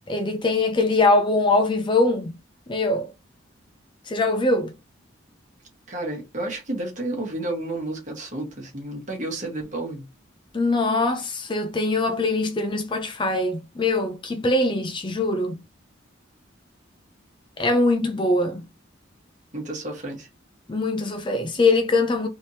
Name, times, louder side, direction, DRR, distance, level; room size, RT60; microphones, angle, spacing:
voice 1, 0.1-2.3 2.7-3.1 4.1-4.7 10.5-15.6 17.6-18.6 20.7-22.3, left 2 dB, 25° left, 0.4 m, -22 dB
voice 2, 5.9-10.1 19.5-20.3, right 2 dB, 40° right, 1.3 m, -31 dB
3.4 x 3.0 x 2.7 m
head